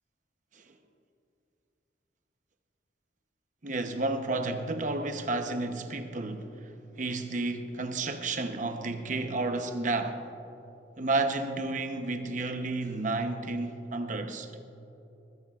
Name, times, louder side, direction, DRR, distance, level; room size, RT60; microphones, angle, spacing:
voice 1, 3.6-6.7 7.0-10.3 11.0-14.6, right 2 dB, 45° right, 0.8 m, -31 dB
19.5 x 14.5 x 2.4 m
head